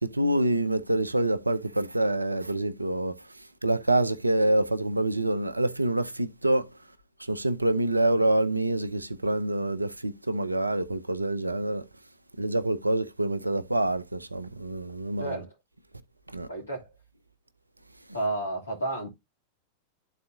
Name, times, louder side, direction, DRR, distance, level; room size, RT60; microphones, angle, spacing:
voice 1, 0.0-3.2 3.6-6.7 7.3-11.9 12.4-15.4 16.3-16.5, right 1 dB, 85° right, 0.5 m, -26 dB
voice 2, 16.5-16.9 18.1-19.1, right 2 dB, 75° left, 2.8 m, -31 dB
12.0 x 4.1 x 2.6 m
figure-of-eight pair, 90°, 0 cm